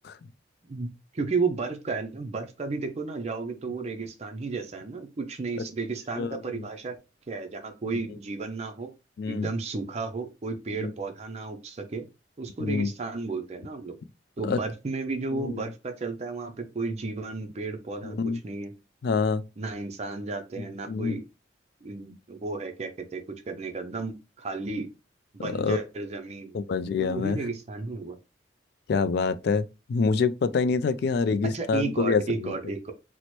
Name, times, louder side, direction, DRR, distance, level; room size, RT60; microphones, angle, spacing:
voice 1, 1.1-7.0 7.3-8.9 9.3-12.1 12.4-14.0 14.4-18.2 18.4-18.7 19.6-21.2 21.8-24.9 25.3-26.6 27.0-28.2 31.4-32.9, right 3 dB, 35° right, 0.4 m, -33 dB
voice 2, 6.2-6.7 9.2-9.5 10.8-10.9 12.6-12.9 14.4-14.6 15.3-15.6 18.0-18.4 19.0-19.4 20.9-21.2 25.4-25.8 26.5-27.4 28.9-29.6 29.9-32.5, left 4 dB, 55° left, 0.3 m, -26 dB
4.2 x 2.1 x 3.0 m
head